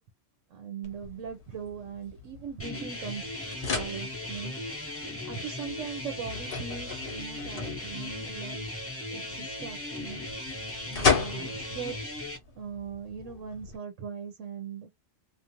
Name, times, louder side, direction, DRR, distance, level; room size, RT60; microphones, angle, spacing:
voice 1, 0.5-3.3 3.6-4.6 5.2-8.7 9.1-10.3 10.9-12.2 12.5-14.9, right 7 dB, 90° right, 1.0 m, -40 dB
sound 1, 0.8-13.8, left 5 dB, 50° left, 0.9 m, -36 dB
sound 2, 2.6-12.4, left 1 dB, 15° left, 0.6 m, -38 dB
2.5 x 2.5 x 2.9 m
omnidirectional pair, 1.3 m